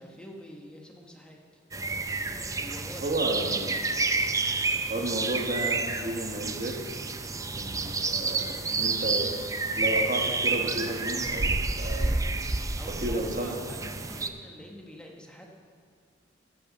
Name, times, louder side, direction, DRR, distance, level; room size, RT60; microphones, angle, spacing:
voice 1, 0.0-1.4 2.5-3.4 4.6-5.0 12.8-15.5, equal, 5° left, 0 dB, 1.0 m, -46 dB
sound 1, 1.7-14.3, right 3 dB, 15° right, 0.5 m, -29 dB
voice 2, 3.0-3.7 4.9-6.9 7.6-9.3 9.7-12.1 12.8-13.7, right 1 dB, 45° right, 2 dB, 1.2 m, -32 dB
15.0 x 5.5 x 6.7 m, 2.2 s
head